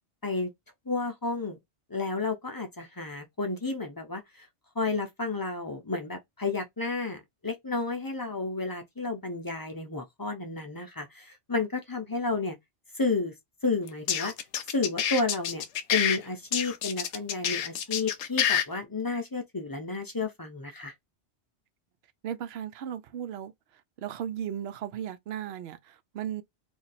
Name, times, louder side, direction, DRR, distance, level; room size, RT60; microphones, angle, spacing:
voice 1, 0.9-1.6 1.9-4.5 4.8-12.6 12.9-13.3 13.6-14.3 14.7-15.7 15.9-20.9, left 3 dB, 25° left, 0.6 m, -31 dB
sound 1, 13.9-16.2 16.5-18.6, left 9 dB, 85° left, 0.9 m, -27 dB
voice 2, 22.2-23.5 24.0-26.4, right 9 dB, 70° right, 0.8 m, -36 dB
2.8 x 2.6 x 4.1 m
omnidirectional pair, 1.2 m